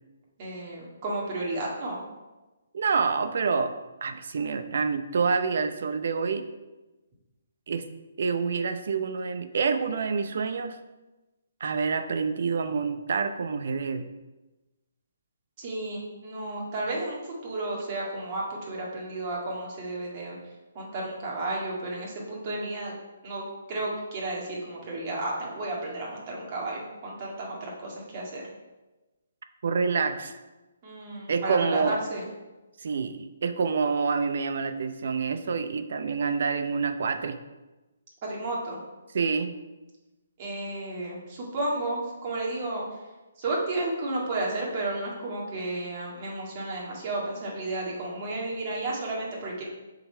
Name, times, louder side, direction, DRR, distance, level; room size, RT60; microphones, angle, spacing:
voice 1, 0.4-2.0 15.6-20.4 20.7-22.9 23.2-28.4 30.8-32.2 38.2-38.8 40.4-43.0 43.4-49.7, right 2 dB, 35° right, -3 dB, 1.8 m, -32 dB
voice 2, 2.7-3.7 4.0-6.5 7.7-7.8 8.2-10.8 11.6-14.0 29.6-30.4 31.3-32.0 32.8-37.4 39.1-39.5, right 5 dB, 60° right, 9 dB, 0.6 m, -27 dB
6.9 x 4.0 x 4.4 m, 1.1 s
hypercardioid pair, 160°, 0 cm